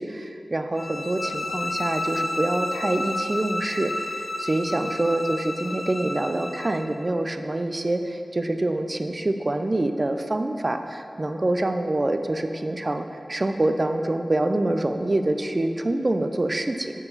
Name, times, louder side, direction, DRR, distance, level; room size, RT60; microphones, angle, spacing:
voice 1, 0.0-16.9, right 2 dB, 35° right, 7 dB, 0.4 m, -26 dB
sound 1, 0.8-6.9, left 1 dB, 65° left, 0.5 m, -31 dB
8.7 x 4.6 x 4.0 m, 2.5 s
wide cardioid pair, 60°, 0 cm